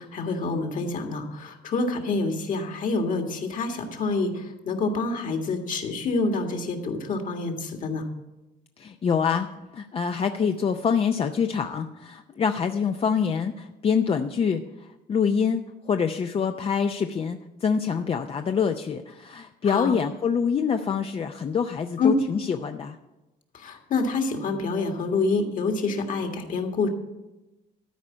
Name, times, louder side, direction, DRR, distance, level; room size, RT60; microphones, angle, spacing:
voice 1, 0.0-8.1 19.6-20.0 22.0-22.2 23.5-26.9, left 3 dB, 50° left, 4 dB, 1.8 m, -27 dB
voice 2, 8.8-9.5 9.7-14.6 15.1-23.0, left 6 dB, 35° left, 6 dB, 0.6 m, -25 dB
13.5 x 4.9 x 8.4 m, 1.0 s
cardioid pair, 110°, 17 cm